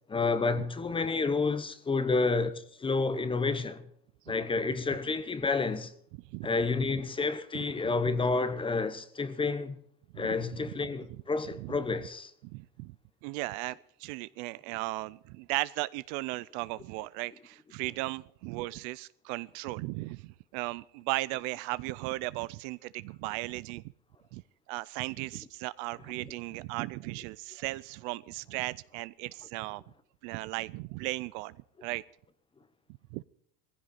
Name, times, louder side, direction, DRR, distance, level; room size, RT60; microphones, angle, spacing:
voice 1, 0.1-2.5 2.8-3.8 4.3-5.9 6.4-9.8 10.2-12.3, left 4 dB, 10° left, 0.8 m, -29 dB
voice 2, 10.1-10.6 11.1-11.2 11.6-11.7 12.4-12.9 13.2-23.8 24.3-24.4 24.7-29.8 30.2-31.5 31.8-32.0 33.1-33.2, right 20 dB, 50° right, 0.6 m, -36 dB
19.0 x 15.5 x 4.1 m
supercardioid pair, 155°, 47 cm